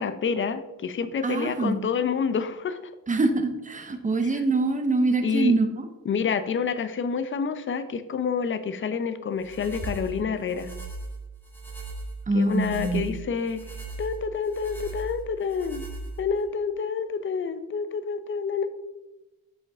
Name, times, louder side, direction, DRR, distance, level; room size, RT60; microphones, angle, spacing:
voice 1, 0.0-2.8 4.3-4.4 5.2-5.5 6.1-10.7 12.3-13.6 14.0-15.8 16.2-18.7, left 6 dB, 35° left, 11 dB, 0.6 m, -28 dB
voice 2, 1.2-1.8 3.1-5.7 12.3-13.2, right 3 dB, 25° right, 7 dB, 0.9 m, -24 dB
sound 1, 9.4-16.4, right 3 dB, 5° left, 1.6 m, -38 dB
7.9 x 5.2 x 3.6 m, 1.0 s
cardioid pair, 110°, 33 cm